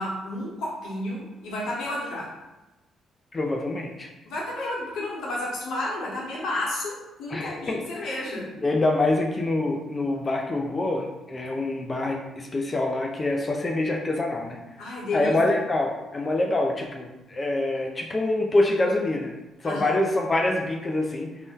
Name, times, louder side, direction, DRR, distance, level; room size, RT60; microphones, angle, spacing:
voice 1, 0.0-2.3 4.3-8.5 14.8-15.4 19.6-20.0, left 1 dB, 85° left, -4 dB, 0.9 m, -31 dB
voice 2, 3.3-4.1 7.3-8.3 8.6-21.3, left 2 dB, 30° left, 1 dB, 0.3 m, -26 dB
2.6 x 2.1 x 3.5 m, 1.0 s
cardioid pair, 90°, 0 cm